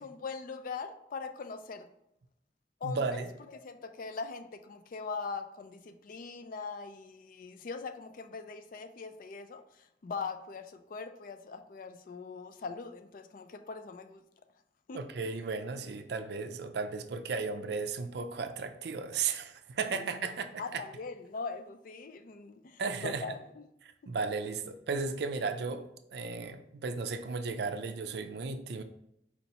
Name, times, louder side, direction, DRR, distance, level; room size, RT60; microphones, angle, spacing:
voice 1, 0.0-1.9 2.8-9.6 10.0-14.2 14.9-15.0 19.9-20.0 20.6-23.6, left 4 dB, 50° left, 8 dB, 0.4 m, -41 dB
voice 2, 2.8-3.3 14.9-20.5 20.7-20.8 22.8-23.2 23.8-25.8 26.1-28.8, right 4 dB, 65° right, 8 dB, 0.4 m, -35 dB
4.3 x 2.9 x 4.1 m, 0.80 s
head